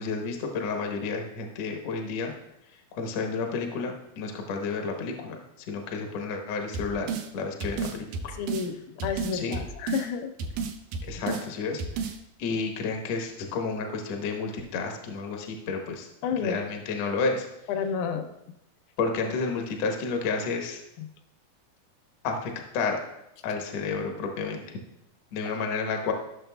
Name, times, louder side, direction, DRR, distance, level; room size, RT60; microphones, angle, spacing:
voice 1, 0.0-2.3 3.0-7.1 7.3-8.3 9.3-9.6 11.1-11.8 12.4-16.1 16.4-17.5 19.0-20.8 22.2-23.0 23.4-24.6 25.3-26.1, left 4 dB, 65° left, 2 dB, 1.6 m, -31 dB
sound 1, 6.7-7.3 7.6-8.7 9.0-10.1 10.4-11.5 11.8-12.2, right 5 dB, 90° right, 1.6 m, -32 dB
voice 2, 8.4-10.3 16.2-16.6 17.7-18.3 21.0-21.1, left 6 dB, 85° left, 7 dB, 2.5 m, -30 dB
14.5 x 6.6 x 2.2 m, 0.83 s
omnidirectional pair, 4.1 m